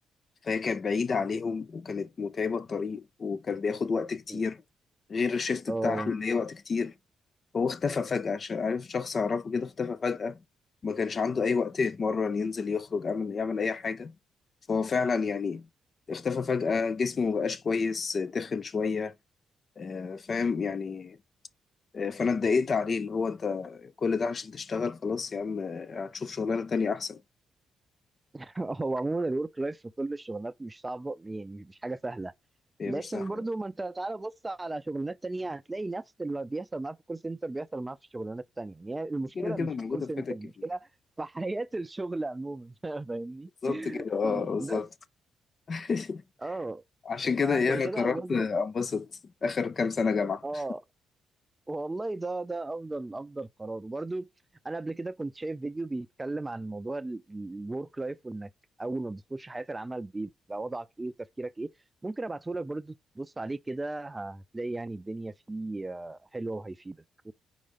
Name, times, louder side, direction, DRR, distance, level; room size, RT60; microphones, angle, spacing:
voice 1, 0.4-4.6 5.1-6.9 7.5-10.4 10.8-14.1 14.7-15.7 16.1-19.1 19.8-21.2 21.9-27.2 32.8-33.2 39.4-40.4 43.6-44.9 45.7-46.2 47.0-49.1 49.4-50.4, left 5 dB, 50° left, 0.7 m, -29 dB
voice 2, 5.7-6.2 28.3-32.3 32.8-40.9 41.2-44.8 46.4-46.8 47.4-48.5 50.4-50.8 51.7-54.3 54.6-58.5 58.8-61.7 62.0-67.3, right 2 dB, 20° right, 0.5 m, -35 dB
4.9 x 3.9 x 5.7 m
hypercardioid pair, 50°, 0 cm